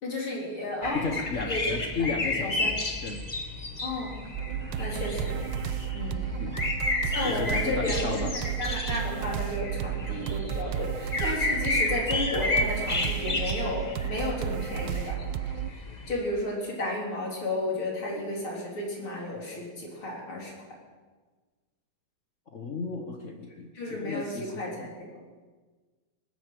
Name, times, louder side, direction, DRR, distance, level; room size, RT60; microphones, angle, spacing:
voice 1, 0.0-1.2 1.5-1.8 2.4-2.7 3.8-4.2 4.8-5.5 5.9-6.3 7.0-15.2 16.1-20.5 23.7-25.2, left 2 dB, 80° left, -2 dB, 4.6 m, -33 dB
sound 1, 0.8-16.2, left 2 dB, 25° left, 1.0 m, -32 dB
voice 2, 0.9-3.2 6.4-6.7 7.2-8.3 22.5-24.9, left 4 dB, 45° left, 4 dB, 1.2 m, -34 dB
sound 2, 4.3-15.7, right 10 dB, 70° right, 1.2 m, -32 dB
18.5 x 9.9 x 7.6 m, 1.4 s
omnidirectional pair, 2.3 m